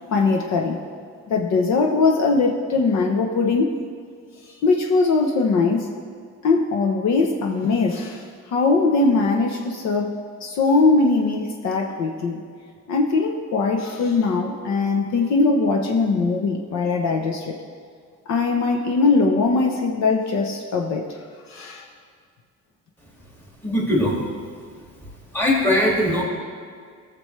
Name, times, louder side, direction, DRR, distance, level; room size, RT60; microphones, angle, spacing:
voice 1, 0.1-0.8 1.3-3.7 4.6-5.9 6.4-12.4 12.9-17.5 18.3-21.0 21.5-21.9, left 3 dB, 65° left, 2 dB, 1.0 m, -21 dB
voice 2, 23.6-24.2 25.3-26.2, left 1 dB, 5° left, -4 dB, 2.2 m, -20 dB
18.5 x 6.9 x 3.2 m, 2.1 s
cardioid pair, 175°, 30 cm